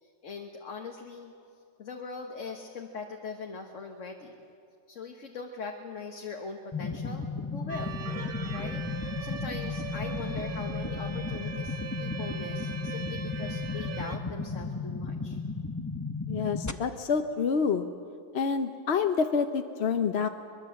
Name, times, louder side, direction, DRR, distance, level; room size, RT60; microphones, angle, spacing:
voice 1, 0.0-1.3 1.8-4.4 4.9-7.3 7.5-8.0 8.5-15.4, left 4 dB, 80° left, 2 dB, 1.6 m, -41 dB
sound 1, 6.7-16.7, left 4 dB, 20° left, 0.6 m, -34 dB
sound 2, 7.7-14.2, right 6 dB, 45° right, 1.0 m, -40 dB
voice 2, 16.3-17.9 18.3-20.3, left 5 dB, 60° left, 7 dB, 1.0 m, -27 dB
23.0 x 22.0 x 7.6 m, 2.4 s
omnidirectional pair, 1.3 m